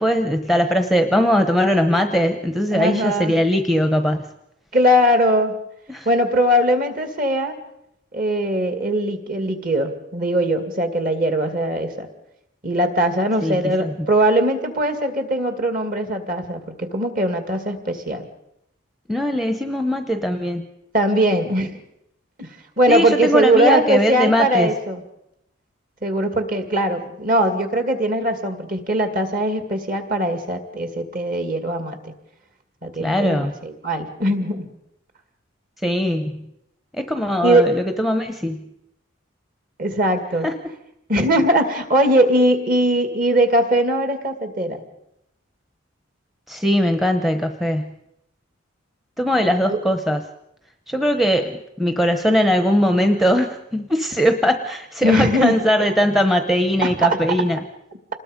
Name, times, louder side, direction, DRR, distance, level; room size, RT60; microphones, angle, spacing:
voice 1, 0.0-4.3 5.9-6.1 13.4-13.9 19.1-20.6 22.9-24.7 33.0-33.5 35.8-36.5 36.9-38.6 40.4-40.5 46.5-47.9 49.2-50.2 50.9-57.6, equal, ahead, 7 dB, 0.9 m, -20 dB
voice 2, 2.7-3.3 4.7-5.5 6.1-7.6 8.1-12.1 12.6-18.2 20.9-21.7 22.4-22.5 22.8-25.0 26.0-32.1 32.8-34.7 37.4-37.7 39.8-40.5 41.1-44.8 49.7-49.8 55.0-55.5 56.8-57.2, right 1 dB, 40° right, 7 dB, 2.3 m, -20 dB
27.0 x 20.0 x 5.3 m, 0.80 s
head